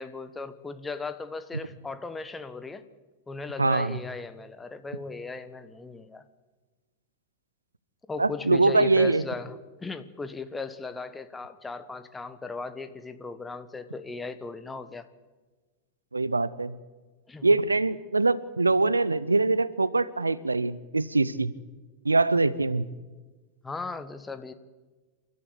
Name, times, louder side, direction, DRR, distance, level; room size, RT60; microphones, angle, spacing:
voice 1, 0.0-2.8 3.3-6.2 8.1-15.1 17.3-17.5 23.6-24.5, left 4 dB, 10° left, 11 dB, 1.3 m, -37 dB
voice 2, 3.6-4.0 8.2-9.2 16.1-16.7 17.4-21.5 22.0-22.9, right 3 dB, 80° right, 19 dB, 0.7 m, -23 dB
28.5 x 12.5 x 8.2 m, 1.3 s
figure-of-eight pair, 90°, 0 cm